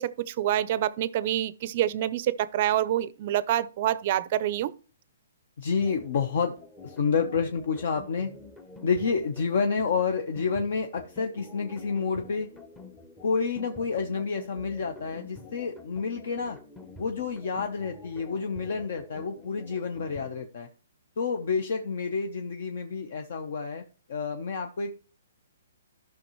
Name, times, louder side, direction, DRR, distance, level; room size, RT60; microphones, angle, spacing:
voice 1, 0.0-4.7, right 12 dB, 40° right, 0.5 m, -27 dB
voice 2, 5.6-6.5 6.8-8.3 8.8-12.5 13.2-16.6 17.0-20.7 21.2-23.8 24.1-24.9, left 5 dB, 60° left, 0.9 m, -29 dB
sound 1, 5.8-20.5, left 3 dB, 10° left, 0.7 m, -48 dB
14.0 x 5.9 x 3.1 m
hypercardioid pair, 160°, 0 cm